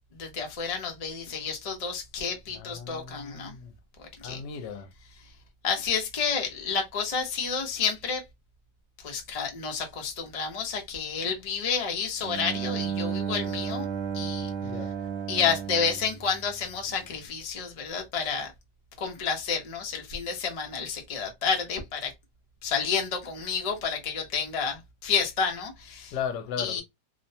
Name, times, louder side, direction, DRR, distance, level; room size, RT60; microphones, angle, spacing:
voice 1, 0.2-3.6 4.0-4.4 5.6-8.2 9.0-13.8 14.1-14.5 15.3-18.5 19.0-22.1 22.6-26.2 26.6-26.8, left 6 dB, 55° left, 0.4 m, -30 dB
voice 2, 2.5-3.7 4.2-4.9 14.6-14.9 26.1-26.8, left 7 dB, 80° left, 1.2 m, -36 dB
Bowed string instrument, 12.2-17.0, right 7 dB, 75° right, 1.2 m, -33 dB
3.0 x 2.1 x 2.6 m
omnidirectional pair, 1.9 m